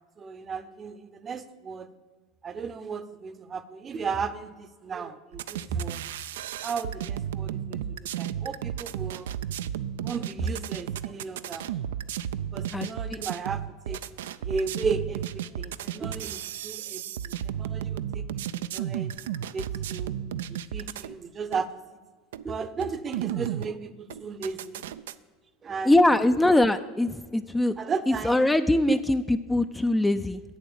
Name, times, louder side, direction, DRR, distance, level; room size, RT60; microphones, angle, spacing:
voice 1, 0.2-1.9 2.4-6.0 6.6-9.3 10.0-11.7 12.5-14.0 14.4-18.2 18.7-19.1 19.5-20.1 20.5-21.7 22.4-24.8 25.6-25.9 27.8-28.5 28.9-29.0, right 5 dB, 30° right, 12 dB, 0.7 m, -34 dB
sound 1, 5.3-21.1 21.5-21.6 22.3-22.4 22.8-23.7 24.1-25.1, right 10 dB, 80° right, 0.3 m, -33 dB
voice 2, 12.7-13.2 25.8-27.7 28.1-30.4, left 1 dB, 10° left, 10 dB, 0.4 m, -22 dB
8.2 x 7.1 x 7.1 m, 1.5 s
hypercardioid pair, 95°, 0 cm